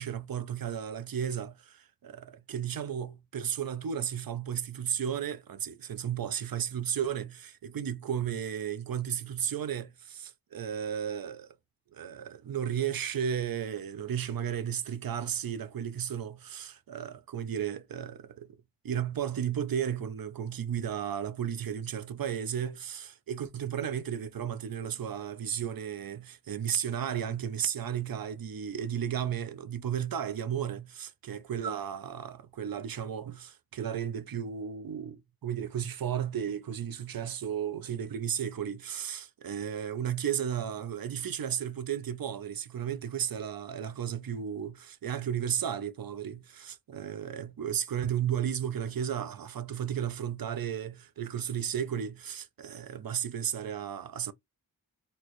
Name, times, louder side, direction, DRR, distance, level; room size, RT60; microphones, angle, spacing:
voice 1, 0.0-11.5 11.9-18.5 18.8-54.3, right 9 dB, 65° right, 0.6 m, -34 dB
4.2 x 2.1 x 3.0 m
wide cardioid pair, 60°, 38 cm